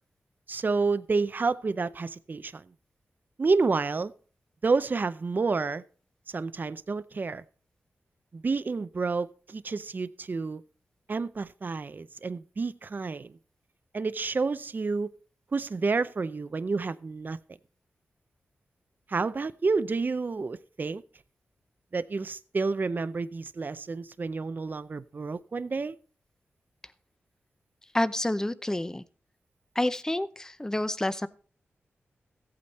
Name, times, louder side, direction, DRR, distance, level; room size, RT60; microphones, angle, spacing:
voice 1, 0.5-2.6 3.4-4.1 4.6-5.8 6.3-7.4 8.3-10.6 11.1-13.3 13.9-15.1 15.5-17.4 19.1-21.0 21.9-26.0, right 4 dB, 45° right, 0.5 m, -29 dB
voice 2, 27.9-29.0 29.8-31.3, left 1 dB, 15° left, 0.7 m, -28 dB
14.5 x 8.5 x 4.2 m
cardioid pair, 60°, 4 cm